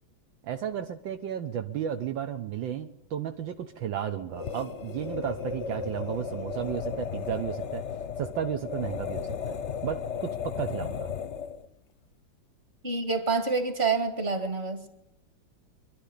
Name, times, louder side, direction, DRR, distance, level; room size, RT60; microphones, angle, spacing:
voice 1, 0.4-7.8 8.2-11.1, right 9 dB, 75° right, 7 dB, 1.6 m, -33 dB
sound 1, 4.3-11.7, left 7 dB, 50° left, 0.9 m, -35 dB
voice 2, 12.8-14.9, right 4 dB, 30° right, 7 dB, 2.4 m, -27 dB
24.0 x 11.5 x 9.9 m, 0.90 s
omnidirectional pair, 2.2 m